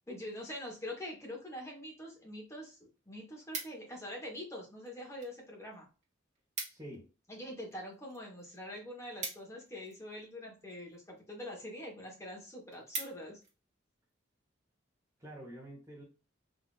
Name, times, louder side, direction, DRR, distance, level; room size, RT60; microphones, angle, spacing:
voice 1, 0.1-5.8 7.3-13.4, left 1 dB, 15° left, -2 dB, 1.3 m, -44 dB
sound 1, 2.3-2.4 2.8-4.1 4.8-5.4 5.7-5.8 6.0-6.1 6.3-7.0 7.3-10.2 10.9-11.2 11.7-11.8 12.2-12.3 12.5-13.5 14.0-14.2, right 4 dB, 35° right, 1.3 m, -43 dB
voice 2, 6.6-7.1 15.2-16.0, right 1 dB, 15° right, -4 dB, 1.2 m, -47 dB
3.9 x 2.8 x 2.5 m, 0.32 s
head